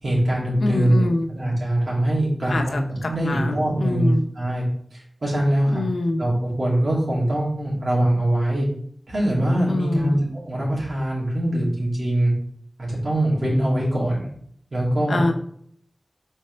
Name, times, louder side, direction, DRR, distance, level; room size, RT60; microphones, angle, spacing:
voice 1, 0.0-2.8 3.1-5.8 6.2-8.7 9.1-12.3 12.8-14.3 14.7-15.2, right 1 dB, 75° right, -5 dB, 2.9 m, -22 dB
voice 2, 0.6-1.3 2.5-4.2 5.7-6.2 9.7-10.2 15.1-15.3, left 2 dB, 85° left, 3 dB, 0.8 m, -25 dB
4.6 x 4.2 x 5.6 m, 0.65 s
wide cardioid pair, 60°, 0 cm